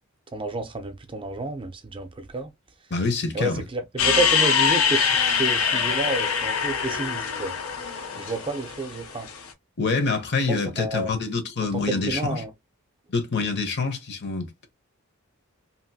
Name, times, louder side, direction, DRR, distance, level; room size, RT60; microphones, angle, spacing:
voice 1, 0.3-2.5 3.3-7.6 8.2-9.3 10.5-11.1 11.7-12.5, right 2 dB, 25° right, 0.5 m, -30 dB
voice 2, 2.9-3.6 9.8-12.4 13.1-14.7, left 4 dB, 55° left, 0.8 m, -26 dB
sound 1, 4.0-9.4, left 6 dB, 80° left, 0.7 m, -23 dB
2.8 x 2.6 x 2.7 m
head